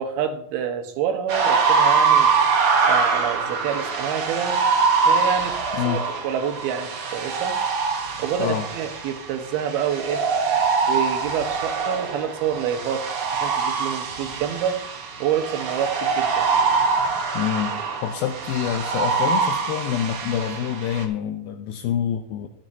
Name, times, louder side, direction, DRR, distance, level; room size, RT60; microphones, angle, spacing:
voice 1, 0.0-2.3 2.9-4.6 5.1-6.0 6.2-7.6 8.2-10.2 10.8-13.0 13.3-14.8 15.2-16.5, right 8 dB, 80° right, 6 dB, 3.0 m, -27 dB
sound 1, 1.3-21.0, right 5 dB, 50° right, 1.8 m, -23 dB
voice 2, 5.7-6.1 8.4-8.7 17.3-22.5, left 10 dB, 80° left, 6 dB, 2.4 m, -26 dB
22.0 x 7.3 x 2.7 m, 0.70 s
omnidirectional pair, 4.5 m